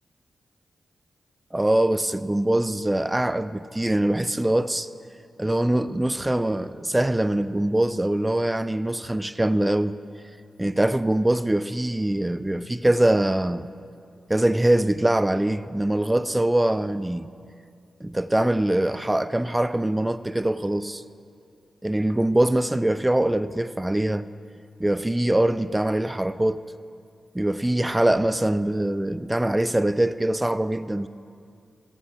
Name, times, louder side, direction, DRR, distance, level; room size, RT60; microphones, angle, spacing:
voice 1, 1.5-4.9 5.4-10.0 10.6-13.7 14.3-17.3 18.0-21.0 21.8-24.3 24.8-26.6 27.3-31.1, right 1 dB, 15° right, 0.4 m, -23 dB
16.5 x 7.7 x 4.4 m
cardioid pair, 55°, 0 cm